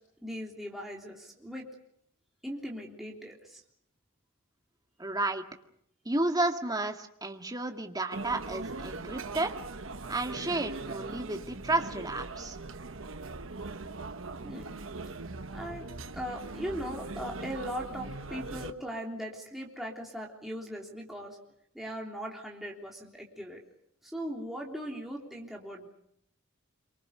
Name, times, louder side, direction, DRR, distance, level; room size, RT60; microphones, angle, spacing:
voice 1, 0.2-1.7 2.4-3.6 14.4-14.8 15.5-15.9 16.1-21.4 21.7-23.6 24.0-25.9, equal, ahead, -2 dB, 3.4 m, -39 dB
voice 2, 5.0-5.4 6.1-9.6 10.1-12.6, right 2 dB, 20° right, 4 dB, 1.9 m, -32 dB
sound 1, 8.1-18.7, right 3 dB, 70° right, 1.3 m, -40 dB
26.5 x 24.5 x 6.7 m, 0.72 s
head